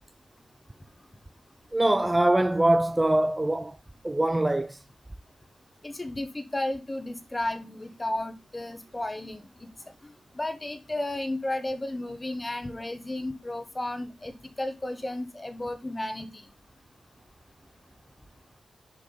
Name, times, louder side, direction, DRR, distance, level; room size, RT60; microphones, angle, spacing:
voice 1, 1.7-3.8 4.0-4.8, right 1 dB, 10° right, 0.3 m, -23 dB
voice 2, 5.8-9.7 10.0-16.5, left 1 dB, 15° left, 1.0 m, -33 dB
6.5 x 5.2 x 3.9 m
wide cardioid pair, 135°, 0 cm